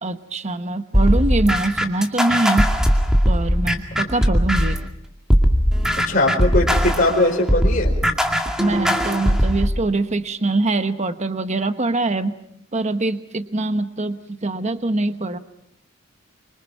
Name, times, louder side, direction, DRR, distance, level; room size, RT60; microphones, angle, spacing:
voice 1, 0.0-2.7 3.2-4.8 8.6-12.3 12.7-15.4, right 2 dB, 35° right, 9 dB, 1.1 m, -23 dB
sound 1, 0.9-4.9 5.3-9.7, equal, 5° right, 2.2 m, -19 dB
voice 2, 5.9-7.9, left 1 dB, 45° left, -1 dB, 4.6 m, -20 dB
26.5 x 25.5 x 5.9 m, 0.72 s
head